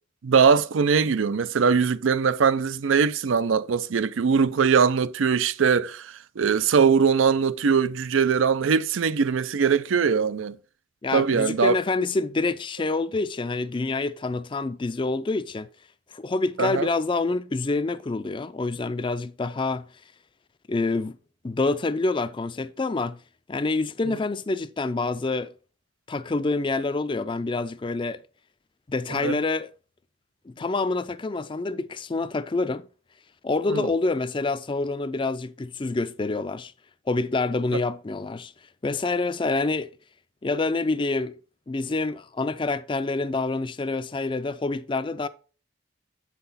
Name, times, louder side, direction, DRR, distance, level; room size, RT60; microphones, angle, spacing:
voice 1, 0.2-10.6 11.1-11.7 16.6-16.9 29.1-29.4 33.7-33.9, right 6 dB, 80° right, 0.5 m, -21 dB
voice 2, 11.0-15.7 16.1-19.9 20.7-21.2 21.4-23.2 23.5-25.5 26.1-28.2 28.9-29.7 30.5-32.9 33.4-36.7 37.1-38.5 38.8-39.9 40.4-41.3 41.7-45.3, left 3 dB, 25° left, 0.4 m, -27 dB
7.9 x 5.9 x 4.0 m
head